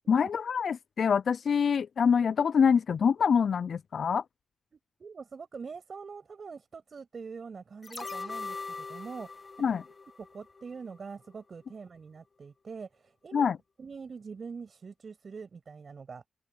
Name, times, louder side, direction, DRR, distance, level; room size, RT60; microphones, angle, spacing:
voice 1, 0.1-4.2 9.6-9.8 13.3-13.6, left 6 dB, 60° left, 0.3 m, -25 dB
voice 2, 4.7-9.3 10.2-13.5 13.8-16.3, right 5 dB, 50° right, 7.2 m, -44 dB
sound 1, 7.8-11.0 11.3-11.4, left 4 dB, 35° left, 1.1 m, -41 dB
open air
cardioid pair, 65°, 0 cm